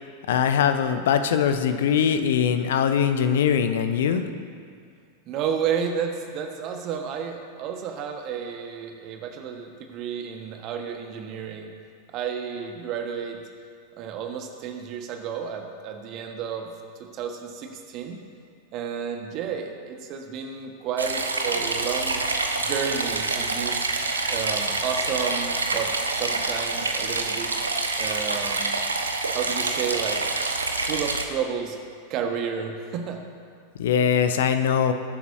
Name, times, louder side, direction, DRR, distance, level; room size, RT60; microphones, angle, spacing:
voice 1, 0.3-4.2 33.8-34.9, left 8 dB, 60° left, 9 dB, 0.9 m, -22 dB
voice 2, 5.3-11.7 12.1-13.4 14.0-16.7 17.1-18.2 18.7-22.2 22.6-23.9 24.3-27.5 28.0-28.8 29.3-30.3 30.8-31.8 32.1-33.2, right 7 dB, 40° right, 4 dB, 1.5 m, -31 dB
sound 1, 21.0-31.3, right 3 dB, 75° right, 0.9 m, -27 dB
21.5 x 11.0 x 2.8 m, 2.2 s
figure-of-eight pair, 90°, 0 cm